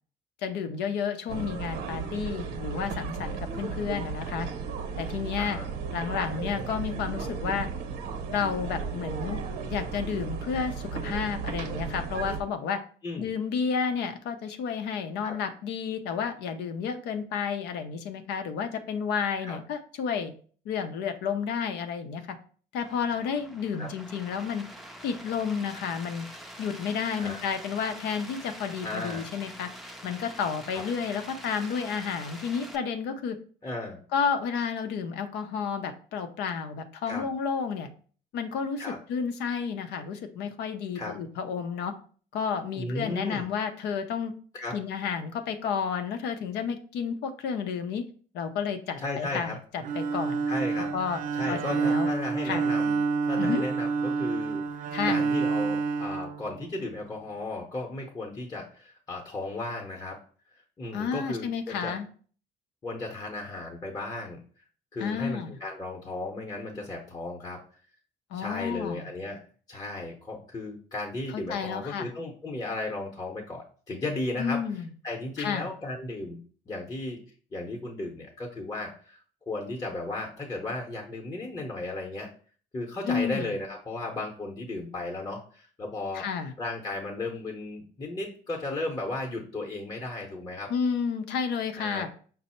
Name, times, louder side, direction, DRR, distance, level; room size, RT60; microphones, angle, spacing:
voice 1, 0.4-4.5 5.0-5.6 5.9-7.7 8.3-9.4 9.7-12.8 13.2-20.3 20.7-22.4 22.7-24.7 25.0-26.3 26.6-29.7 30.0-33.4 34.1-37.9 38.3-41.9 42.3-44.3 44.7-48.1 48.3-50.4 50.9-51.2 51.5-52.1 52.4-52.7 53.4-53.6 54.9-55.2 60.9-62.1 65.0-65.6 68.3-69.1 71.3-72.1 74.4-74.9 75.4-75.7 83.1-83.5 86.1-86.5 90.7-92.1, left 6 dB, 80° left, 8 dB, 0.6 m, -31 dB
sound 1, 1.3-12.4, right 5 dB, 75° right, 0.8 m, -35 dB
sound 2, 22.8-32.8, equal, ahead, 0.5 m, -45 dB
voice 2, 28.8-29.3 30.7-30.8 33.6-34.0 37.1-37.2 38.8-39.0 40.9-41.1 42.7-43.5 44.5-44.8 49.0-49.6 50.5-50.9 51.3-52.9 53.2-60.2 60.8-61.9 62.8-64.4 64.9-67.6 68.3-69.4 69.7-74.6 75.0-76.4 76.7-77.2 77.5-82.3 82.7-86.3 86.6-90.7 91.8-92.1, left 2 dB, 20° left, 0 dB, 0.8 m, -35 dB
Bowed string instrument, 49.8-57.0, right 4 dB, 50° right, 0.5 m, -28 dB
5.3 x 2.0 x 4.2 m, 0.43 s
cardioid pair, 110°, 17 cm